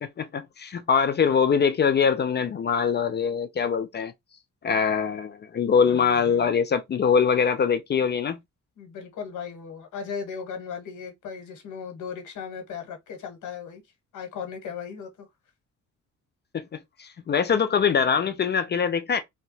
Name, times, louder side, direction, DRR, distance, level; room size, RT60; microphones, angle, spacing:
voice 1, 0.0-4.1 4.6-8.4 17.0-19.2, left 6 dB, 35° left, 0.4 m, -23 dB
voice 2, 5.9-6.6 8.8-13.8 14.1-15.3, left 6 dB, 80° left, 1.1 m, -37 dB
2.7 x 2.2 x 2.6 m
cardioid pair, 90°, 30 cm